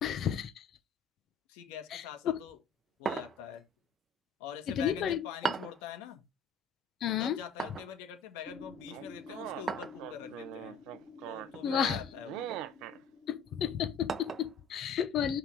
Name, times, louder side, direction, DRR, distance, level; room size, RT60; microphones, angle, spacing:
voice 1, 0.0-0.7 1.9-2.0 4.8-5.2 7.0-7.4 11.6-12.0 13.3-15.4, left 9 dB, 50° left, 1.0 m, -31 dB
voice 2, 1.5-2.6 3.0-3.6 4.4-6.2 7.1-10.8 11.2-12.5, left 9 dB, 90° left, 1.7 m, -44 dB
sound 1, 3.0-3.6 5.4-5.8 7.6-7.9 9.7-10.0 11.5-11.9 12.5-12.7 14.1-14.5, right 5 dB, 30° right, 0.7 m, -36 dB
sound 2, 8.4-14.7, left 3 dB, 30° left, 2.6 m, -51 dB
sound 3, 8.9-13.0, right 13 dB, 75° right, 0.7 m, -41 dB
5.8 x 3.8 x 5.9 m
cardioid pair, 110°, 0 cm